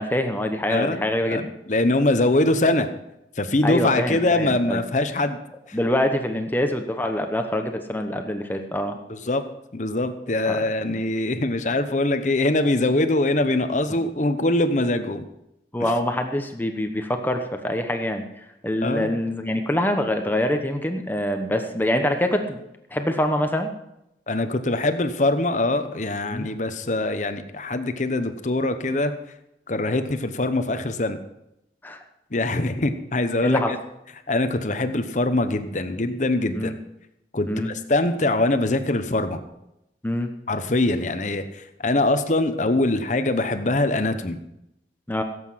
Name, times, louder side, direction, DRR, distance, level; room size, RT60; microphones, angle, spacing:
voice 1, 0.0-1.5 3.6-4.8 5.7-9.0 10.4-11.0 15.7-18.2 18.6-22.6 22.9-23.7 26.3-26.5 31.8-32.0 33.4-33.7 36.5-36.8 37.5-37.7 40.0-40.3 45.1-45.2, left 1 dB, 10° left, 5 dB, 0.9 m, -25 dB
voice 2, 0.7-1.0 1.3-2.9 3.4-5.4 5.7-5.8 9.1-9.4 9.7-15.2 18.8-19.1 24.3-29.1 29.7-31.2 32.3-33.8 34.3-36.7 37.3-39.4 40.5-44.4, left 2 dB, 45° left, 9 dB, 0.9 m, -23 dB
17.0 x 8.2 x 5.7 m, 0.84 s
head